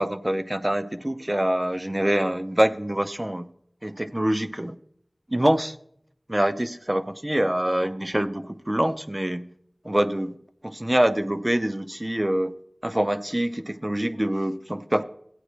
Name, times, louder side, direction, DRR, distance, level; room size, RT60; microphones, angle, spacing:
voice 1, 0.0-3.5 3.8-4.8 5.3-5.8 6.3-9.5 9.8-10.4 10.6-12.5 12.8-15.0, right 1 dB, 25° right, 11 dB, 0.5 m, -25 dB
15.0 x 9.0 x 3.1 m, 0.68 s
wide cardioid pair, 45°, 0 cm